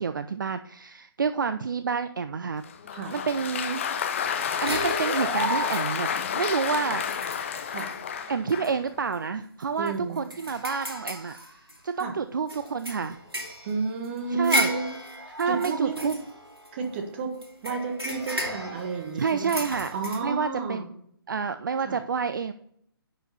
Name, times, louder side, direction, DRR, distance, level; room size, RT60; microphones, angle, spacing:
voice 1, 0.0-2.6 3.1-3.8 4.6-6.1 6.3-7.0 8.3-11.4 11.8-13.2 14.3-14.7 15.4-16.2 19.2-19.9 20.2-20.8 21.3-22.5, right 5 dB, 55° right, 11 dB, 0.4 m, -28 dB
Applause, 2.6-8.8, left 7 dB, 30° left, 0.6 m, -30 dB
sound 1, 4.7-6.2 6.7-6.8 7.1-7.9 8.5-8.7 9.1-9.2 9.6-12.0 12.5-17.0 17.4-20.2, equal, 85° right, 2.3 m, -33 dB
voice 2, 9.8-10.2 12.0-12.1 13.6-15.0 15.3-16.1 16.7-17.4 17.6-19.5 19.9-20.9 21.8-22.0, right 4 dB, 30° right, 4 dB, 1.3 m, -31 dB
10.0 x 4.7 x 4.2 m, 0.69 s
figure-of-eight pair, 140°, 13 cm